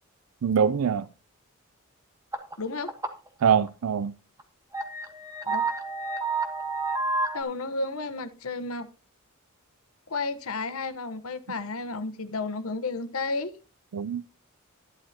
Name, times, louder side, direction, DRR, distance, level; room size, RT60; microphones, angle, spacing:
voice 1, 0.4-1.1 3.4-4.1 13.9-14.3, right 7 dB, 85° right, 0.4 m, -23 dB
sound 1, 2.3-2.5 2.9-3.3 3.7-3.8 4.4-4.5 4.7-7.4, right 3 dB, 15° right, 1.2 m, -29 dB
voice 2, 2.6-2.9 5.4-5.7 7.3-8.9 10.1-13.5, left 3 dB, 80° left, 1.0 m, -32 dB
11.5 x 11.5 x 2.8 m
head